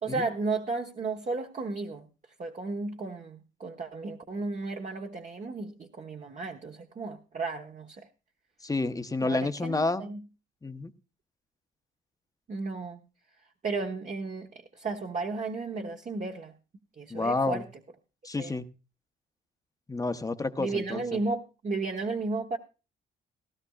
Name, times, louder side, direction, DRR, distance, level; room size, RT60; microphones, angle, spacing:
voice 1, 0.0-2.1 2.4-8.1 9.2-10.2 12.5-13.0 13.6-16.5 17.0-17.6 18.4-18.6 20.6-22.6, right 3 dB, 40° right, 3 dB, 1.2 m, -34 dB
voice 2, 8.6-10.0 10.6-10.9 17.1-17.6 18.2-18.6 19.9-21.2, left 3 dB, 15° left, 9 dB, 0.9 m, -30 dB
17.0 x 12.5 x 2.4 m, 0.32 s
cardioid pair, 90°, 20 cm